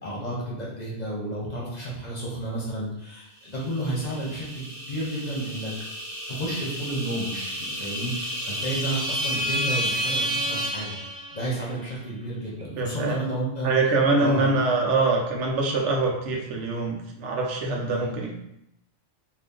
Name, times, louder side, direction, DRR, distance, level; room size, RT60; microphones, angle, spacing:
voice 1, 0.0-5.7 6.3-10.9 11.3-13.7 14.2-14.5 17.9-18.1, right 1 dB, 40° left, -5 dB, 0.8 m, -31 dB
sound 1, 3.6-11.6, equal, 40° right, 0.4 m, -31 dB
voice 2, 12.8-13.2 13.6-18.3, right 3 dB, 80° right, 0 dB, 1.0 m, -24 dB
2.7 x 2.4 x 3.6 m, 0.80 s
omnidirectional pair, 1.2 m